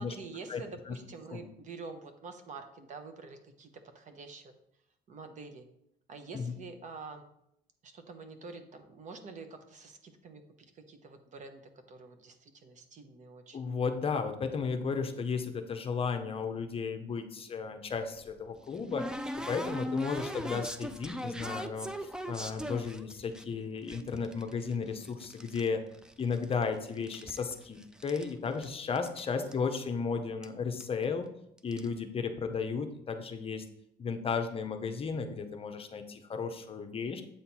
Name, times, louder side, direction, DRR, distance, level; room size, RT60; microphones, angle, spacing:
voice 1, 0.0-3.7 3.9-4.5 5.1-5.6 6.1-7.2 7.8-10.4 10.7-11.6 11.9-13.7 29.3-29.7, right 4 dB, 45° right, 7 dB, 0.9 m, -47 dB
voice 2, 13.5-19.1 19.5-25.8 26.2-31.3 31.6-33.6 34.0-37.2, left 5 dB, 35° left, 7 dB, 0.7 m, -34 dB
sound 1, 18.2-23.4 23.9-25.7 25.9-26.7 27.0-28.3 28.6-28.7 29.0-29.2 29.5-29.6 30.4-30.5 30.8-31.0 31.6-31.9, equal, 5° right, 0.4 m, -39 dB
7.9 x 4.3 x 4.2 m, 0.76 s
cardioid pair, 110°, 17 cm